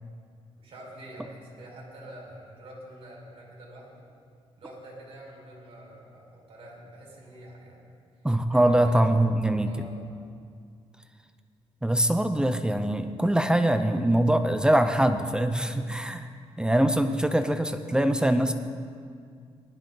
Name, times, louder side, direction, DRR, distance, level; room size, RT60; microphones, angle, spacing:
voice 1, 0.6-4.0 4.6-7.9 8.5-9.0 9.6-10.0, right 1 dB, 60° right, -2 dB, 4.8 m, -46 dB
voice 2, 8.2-9.7 11.8-16.3 16.6-18.5, right 1 dB, 5° right, 8 dB, 0.6 m, -23 dB
20.0 x 13.0 x 3.9 m, 2.2 s
cardioid pair, 135°, 11 cm